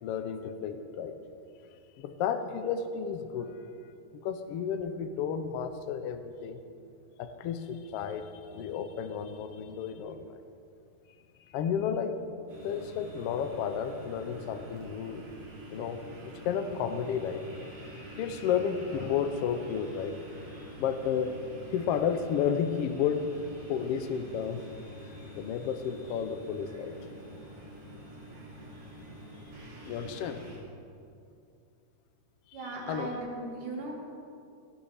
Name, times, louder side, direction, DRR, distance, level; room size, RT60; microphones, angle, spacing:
voice 1, 0.0-1.1 2.0-3.6 4.1-6.6 7.2-10.4 11.5-12.1 12.6-15.3 15.7-16.0 16.4-17.4 17.8-20.2 20.5-21.3 21.7-23.3 23.7-24.6 25.0-26.9 29.8-30.4 32.5-33.1, left 7 dB, 80° left, 8 dB, 1.3 m, -32 dB
sound 1, 12.5-30.6, equal, 60° right, 3.7 m, -47 dB
voice 2, 32.5-33.9, right 2 dB, 80° right, -1 dB, 3.5 m, -37 dB
18.0 x 12.5 x 3.5 m, 2.5 s
omnidirectional pair, 3.6 m